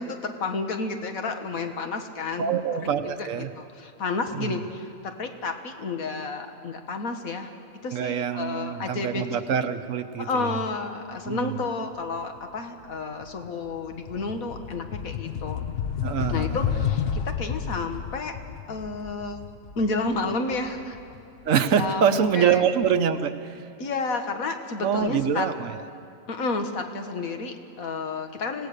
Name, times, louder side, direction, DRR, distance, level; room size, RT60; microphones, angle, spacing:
voice 1, 0.0-2.5 3.2-7.5 7.8-9.2 10.2-15.6 16.3-18.3 18.7-19.4 19.8-21.0 21.8-22.6 23.8-25.5 26.3-28.7, left 3 dB, 85° left, 6 dB, 1.8 m, -31 dB
voice 2, 2.4-3.5 4.3-4.6 7.9-10.6 11.3-11.6 16.0-16.6 21.5-23.6 24.8-25.8, right 7 dB, 70° right, 10 dB, 1.2 m, -25 dB
sound 1, 12.4-12.6 12.9-21.8, left 8 dB, 55° left, 0.9 m, -31 dB
25.5 x 17.5 x 6.7 m, 2.7 s
omnidirectional pair, 1.4 m